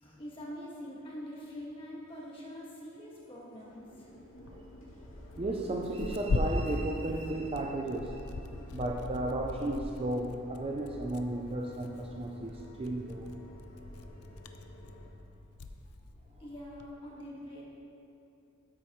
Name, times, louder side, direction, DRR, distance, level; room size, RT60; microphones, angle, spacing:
voice 1, 0.0-4.1 16.4-17.6, equal, 25° left, -5 dB, 1.7 m, -44 dB
sound 1, 1.4-1.5 2.0-2.4 2.7-2.8 3.1-3.3 3.5-15.1, equal, 65° left, 2.2 m, -50 dB
Tearing, 4.3-16.9, left 2 dB, 85° left, 0.6 m, -40 dB
voice 2, 5.4-8.4 8.7-13.3, right 1 dB, 25° right, 2 dB, 0.4 m, -34 dB
13.0 x 7.9 x 3.1 m, 2.7 s
head